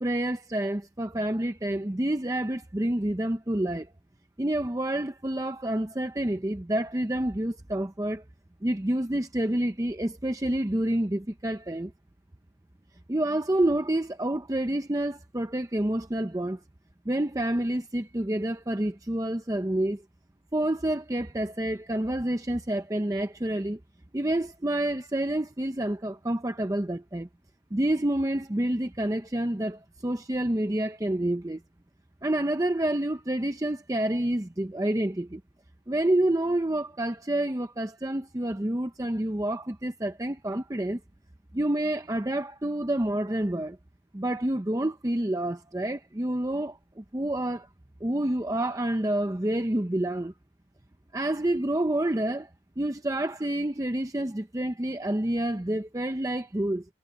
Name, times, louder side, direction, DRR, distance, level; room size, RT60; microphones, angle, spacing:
voice 1, 0.0-3.9 4.4-8.2 8.6-11.9 13.1-16.6 17.1-20.0 20.5-23.8 24.1-27.3 27.7-31.6 32.2-35.4 35.9-41.0 41.5-43.8 44.1-47.7 48.0-50.3 51.1-52.5 52.8-56.9, right 1 dB, 20° right, 0.6 m, -28 dB
head